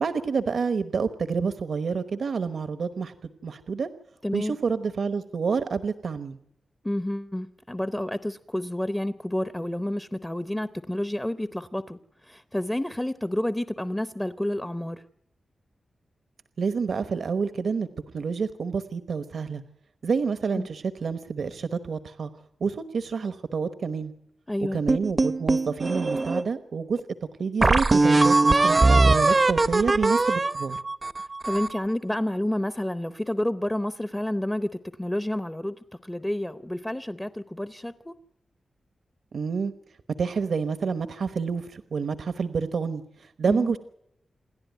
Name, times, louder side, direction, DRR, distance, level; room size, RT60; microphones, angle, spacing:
voice 1, 0.0-3.1 3.4-3.9 4.3-6.4 16.6-17.9 18.1-19.6 20.0-22.3 22.6-24.1 24.7-27.0 27.4-30.8 39.3-39.7 40.2-43.8, right 5 dB, 65° right, 11 dB, 1.0 m, -28 dB
voice 2, 4.2-4.6 6.8-15.0 20.5-20.7 24.5-24.8 31.4-35.8 36.0-38.1 43.5-43.7, left 1 dB, 10° left, 11 dB, 0.7 m, -29 dB
sound 1, 24.9-26.4 27.0-27.1 27.6-31.8, right 3 dB, 30° right, 0.7 m, -21 dB
28.0 x 11.5 x 9.2 m, 0.78 s
wide cardioid pair, 150°, 0 cm